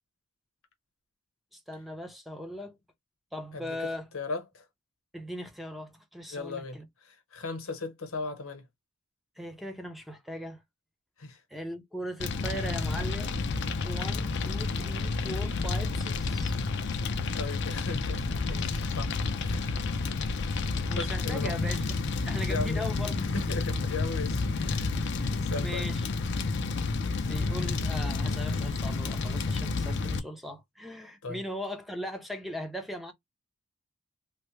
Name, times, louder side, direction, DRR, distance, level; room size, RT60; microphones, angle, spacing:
voice 1, 1.5-2.8 3.3-4.1 5.1-6.9 9.4-10.6 11.5-13.4 13.8-16.6 20.8-22.0 22.3-23.2 23.9-24.0 25.2-26.1 27.2-33.1, equal, ahead, 0.6 m, -39 dB
voice 2, 3.5-4.6 6.3-8.7 11.2-11.4 17.4-19.8 20.6-21.6 22.5-22.9 23.2-25.1 25.4-25.9 31.2-31.4, left 3 dB, 75° left, 0.9 m, -38 dB
Fire, 12.2-30.2, left 3 dB, 55° left, 0.4 m, -30 dB
3.2 x 2.1 x 3.1 m
head